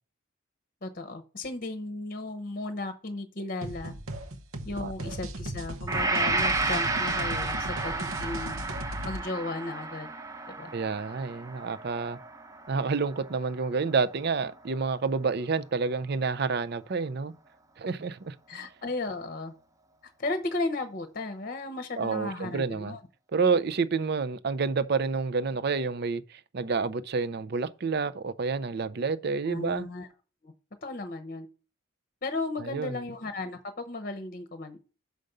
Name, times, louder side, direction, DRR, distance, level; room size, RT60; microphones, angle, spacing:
voice 1, 0.8-3.9 4.6-8.5 9.0-10.1 10.6-10.7 18.5-19.5 20.2-23.0 29.4-30.1 30.4-30.5 30.8-31.5 32.2-34.8, left 2 dB, 40° left, 0.8 m, -35 dB
sound 1, 3.6-9.2, right 1 dB, 80° right, 0.9 m, -37 dB
Gong, 5.9-13.9, right 3 dB, 15° right, 0.7 m, -32 dB
voice 2, 10.7-12.2 12.7-17.3 17.8-18.6 22.0-23.0 23.3-29.9 32.6-33.0, right 4 dB, 50° right, 0.5 m, -29 dB
6.5 x 5.1 x 6.6 m
head